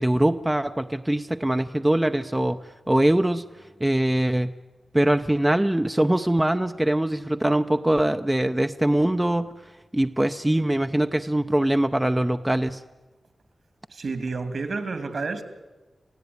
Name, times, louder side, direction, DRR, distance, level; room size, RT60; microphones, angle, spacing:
voice 1, 0.0-2.6 2.9-3.5 3.8-4.5 4.9-9.5 9.9-12.8, right 1 dB, 10° right, 0.7 m, -22 dB
voice 2, 13.9-15.4, right 4 dB, 65° right, 2.6 m, -30 dB
27.5 x 17.0 x 9.5 m
wide cardioid pair, 110°, 0 cm